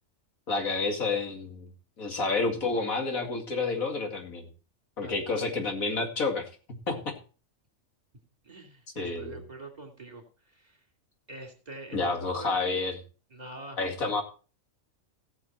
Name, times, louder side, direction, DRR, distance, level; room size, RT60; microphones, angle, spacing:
voice 1, 0.5-1.7 2.0-4.5 5.0-7.1 9.0-9.4 11.9-13.0 13.8-14.2, left 3 dB, 85° left, 3 dB, 2.8 m, -30 dB
voice 2, 5.0-5.5 8.4-10.8 11.3-12.6 13.3-14.2, right 2 dB, 30° right, 2 dB, 2.9 m, -45 dB
18.0 x 6.8 x 4.3 m, 0.37 s
omnidirectional pair, 1.4 m